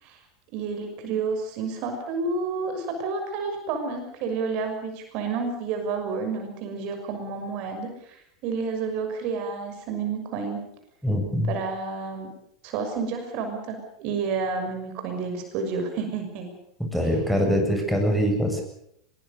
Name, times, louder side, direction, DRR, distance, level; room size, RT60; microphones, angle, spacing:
voice 1, 0.5-10.6 11.5-12.3 12.6-16.5, right 4 dB, 45° right, 5 dB, 6.4 m, -30 dB
voice 2, 11.0-11.5 16.9-18.6, equal, ahead, 2 dB, 7.6 m, -23 dB
24.0 x 22.0 x 6.9 m, 0.74 s
figure-of-eight pair, 90°, 2 cm